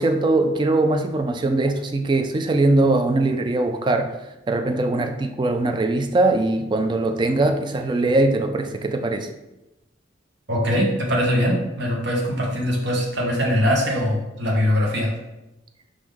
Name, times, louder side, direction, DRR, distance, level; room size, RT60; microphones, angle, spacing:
voice 1, 0.0-4.1 4.5-9.3, right 2 dB, 25° right, 6 dB, 0.3 m, -21 dB
voice 2, 10.5-15.1, equal, 65° right, -1 dB, 1.0 m, -22 dB
4.8 x 2.6 x 3.6 m, 0.97 s
head